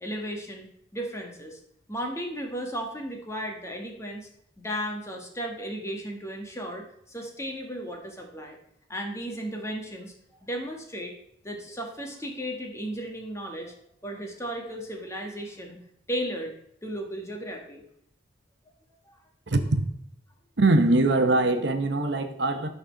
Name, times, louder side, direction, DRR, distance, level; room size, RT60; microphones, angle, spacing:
voice 1, 0.0-0.7 0.9-1.6 1.9-4.3 4.6-8.6 8.9-10.1 10.4-11.1 11.4-13.7 14.0-15.8 16.1-16.5 16.8-17.8 19.0-19.1, equal, 15° left, 2 dB, 1.4 m, -35 dB
voice 2, 19.5-19.8 20.6-22.7, right 2 dB, 65° right, 7 dB, 0.9 m, -22 dB
12.5 x 4.2 x 6.3 m, 0.74 s
head